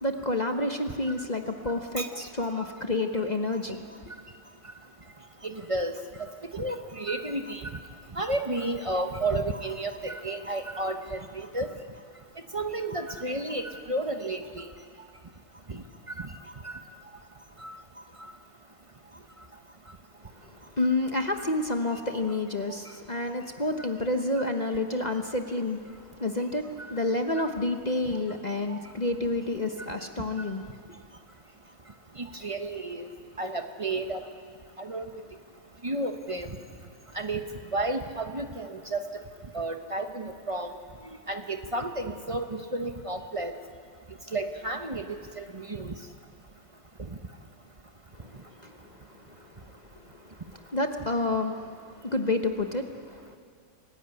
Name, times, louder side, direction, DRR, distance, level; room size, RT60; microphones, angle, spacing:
voice 1, 0.0-3.9 20.4-25.9 26.2-30.6 48.1-50.4 50.7-53.4, left 2 dB, 30° left, 5 dB, 0.8 m, -30 dB
voice 2, 5.4-5.9 6.2-7.8 8.1-11.7 12.5-14.7 15.7-15.8 16.2-16.3 16.6-16.8 17.6-17.8 26.8-26.9 28.7-28.8 32.2-33.1 33.4-34.2 34.8-35.1 35.8-36.6 37.1-37.4 37.7-39.0 39.5-40.7 41.3-43.5 44.3-45.9, right 2 dB, 50° right, 6 dB, 0.4 m, -32 dB
25.5 x 15.5 x 9.8 m, 2.1 s
omnidirectional pair, 2.1 m